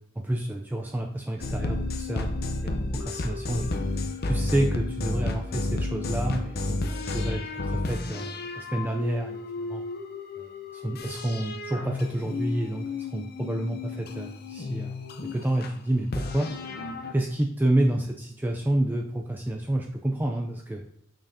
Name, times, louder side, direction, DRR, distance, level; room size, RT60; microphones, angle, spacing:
voice 1, 0.2-3.7 4.2-9.8 10.4-10.5 10.7-15.0 15.3-16.5 17.1-20.8, right 1 dB, 10° right, 2 dB, 0.4 m, -29 dB
sound 1, 1.4-15.7 16.1-17.1, left 2 dB, 55° left, 0.6 m, -32 dB
6.3 x 6.0 x 2.7 m, 0.75 s
head